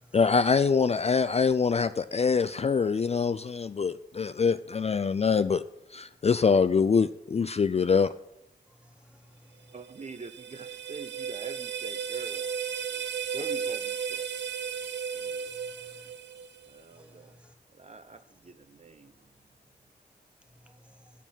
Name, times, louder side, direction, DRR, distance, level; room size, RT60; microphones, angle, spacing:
voice 1, 0.1-5.6 5.9-8.1, left 5 dB, 35° left, 13 dB, 0.4 m, -24 dB
voice 2, 8.8-9.7 15.8-16.1 16.9-17.5 20.6-21.1, equal, 5° right, 7 dB, 1.2 m, -57 dB
voice 3, 9.7-12.5 12.8-13.0 13.3-14.3 15.1-15.5 16.7-17.4 17.7-19.3, right 4 dB, 40° right, 10 dB, 0.6 m, -45 dB
sound 1, 9.7-16.8, right 7 dB, 80° right, 0.6 m, -35 dB
6.9 x 6.0 x 7.2 m, 0.81 s
cardioid pair, 50°, 18 cm